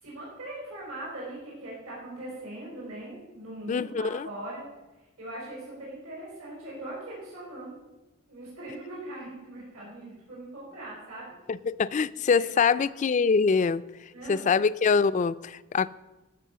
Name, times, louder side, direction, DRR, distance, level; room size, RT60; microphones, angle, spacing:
voice 1, 0.0-4.6 5.2-7.8 8.3-11.2 12.3-12.9 14.1-14.5, right 1 dB, 85° right, 5.0 m, -40 dB
voice 2, 3.7-4.3 11.5-13.8 14.3-15.9, left 5 dB, 35° left, 0.3 m, -24 dB
13.5 x 6.2 x 6.8 m
head